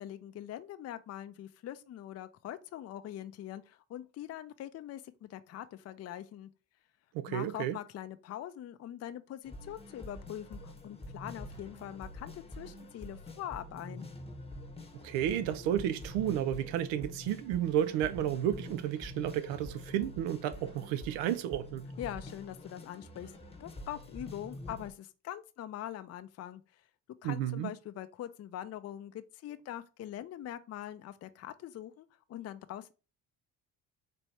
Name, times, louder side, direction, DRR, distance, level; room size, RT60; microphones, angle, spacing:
voice 1, 0.0-6.5 7.3-14.1 22.0-23.3 23.6-26.6 27.2-32.9, left 12 dB, 35° left, 0.4 m, -43 dB
voice 2, 7.1-7.8 15.0-21.8 27.2-27.7, right 11 dB, 85° right, 0.6 m, -32 dB
sound 1, 9.4-24.9, left 1 dB, 15° left, 0.9 m, -46 dB
4.3 x 2.6 x 3.2 m
supercardioid pair, 75°, 44 cm